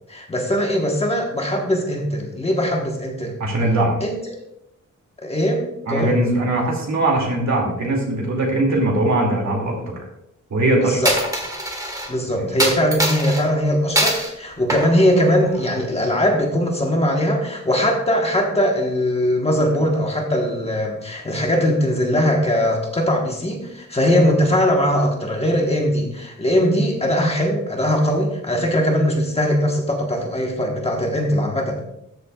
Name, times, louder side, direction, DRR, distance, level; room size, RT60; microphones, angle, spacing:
voice 1, 0.1-3.4 4.0-4.2 5.2-6.1 10.8-11.1 12.1-31.8, equal, 20° left, 0 dB, 1.3 m, -20 dB
voice 2, 3.4-3.9 5.8-10.0 10.5-11.0 12.3-12.4, right 2 dB, 60° right, 0 dB, 2.5 m, -20 dB
Coin (dropping), 11.0-12.1 12.6-13.4 14.0-14.3 14.7-15.8, right 1 dB, 10° right, 1.4 m, -23 dB
13.5 x 7.4 x 2.4 m, 0.80 s
wide cardioid pair, 180°, 32 cm